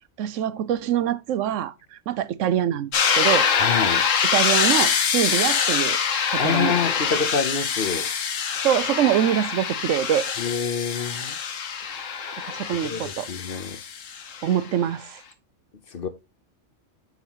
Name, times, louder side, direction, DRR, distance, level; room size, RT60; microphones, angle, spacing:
voice 1, 0.2-3.5 4.3-6.0 6.3-6.8 8.6-10.3 12.5-13.3 14.4-15.2, right 10 dB, 75° right, 1.0 m, -24 dB
sound 1, 2.9-14.6, left 7 dB, 80° left, 1.3 m, -24 dB
voice 2, 3.6-4.0 6.4-8.1 10.4-11.3 12.8-13.8 15.9-16.1, left 6 dB, 50° left, 1.0 m, -27 dB
7.9 x 7.1 x 3.0 m
omnidirectional pair, 1.3 m